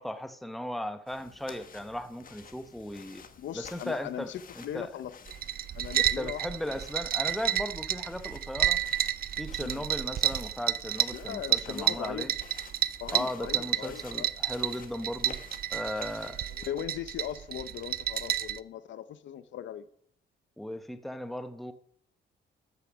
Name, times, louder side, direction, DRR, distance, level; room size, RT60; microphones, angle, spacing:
voice 1, 0.0-3.2 3.5-4.9 6.0-8.8 9.4-12.3 13.1-15.4 15.7-16.4 20.6-21.7, left 1 dB, ahead, 0.9 m, -37 dB
sound 1, 1.1-16.7, left 6 dB, 45° left, 1.3 m, -52 dB
voice 2, 3.4-5.1 5.7-6.4 6.7-6.8 9.6-9.8 11.1-12.3 13.0-14.3 16.4-19.8, left 10 dB, 70° left, 0.8 m, -39 dB
sound 2, 5.3-18.6, right 11 dB, 50° right, 0.5 m, -31 dB
13.5 x 6.6 x 6.2 m
cardioid pair, 90°, 20 cm